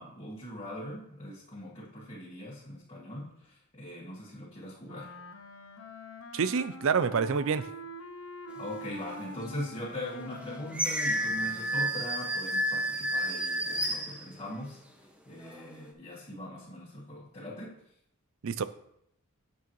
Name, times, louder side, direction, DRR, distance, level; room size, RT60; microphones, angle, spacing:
voice 1, 0.0-5.1 8.5-14.8 15.3-17.8, left 1 dB, 25° left, -7 dB, 1.7 m, -41 dB
Wind instrument woodwind instrument, 4.8-12.2, left 1 dB, 65° left, 0.7 m, -45 dB
voice 2, 6.3-7.6 18.4-18.6, right 6 dB, 65° right, 14 dB, 0.5 m, -27 dB
sound 1, 9.3-9.4 10.1-14.8 15.3-15.9, equal, 5° right, 0.8 m, -31 dB
9.1 x 8.1 x 3.1 m, 0.75 s
head